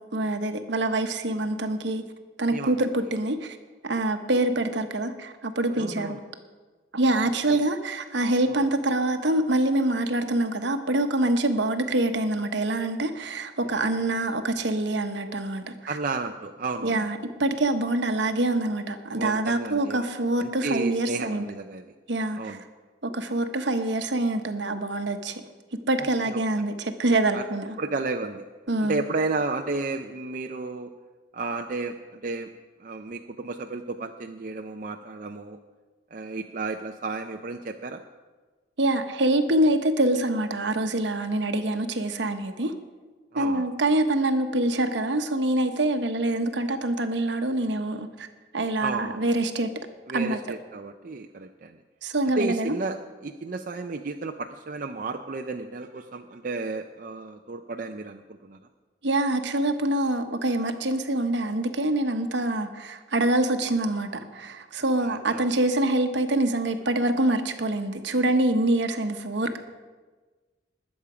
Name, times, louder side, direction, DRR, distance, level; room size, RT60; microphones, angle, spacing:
voice 1, 0.1-2.0 2.4-3.6 3.8-6.2 6.9-16.0 16.8-21.5 22.1-22.6 23.0-25.4 25.9-27.8 28.7-29.0 38.8-42.7 43.3-48.3 48.5-49.7 50.1-50.4 52.0-52.8 59.0-69.6, right 1 dB, 70° right, 7 dB, 1.0 m, -25 dB
voice 2, 5.8-6.2 7.5-7.6 8.5-8.6 15.9-17.0 19.1-20.1 20.4-21.8 22.4-22.6 26.2-26.4 27.3-27.4 27.8-28.4 28.8-30.9 31.3-32.5 32.8-35.6 36.1-38.0 43.3-43.6 48.8-49.2 50.1-51.8 52.4-58.6 65.0-65.4, right 3 dB, 45° right, 4 dB, 0.5 m, -32 dB
20.5 x 7.3 x 4.9 m, 1.3 s
head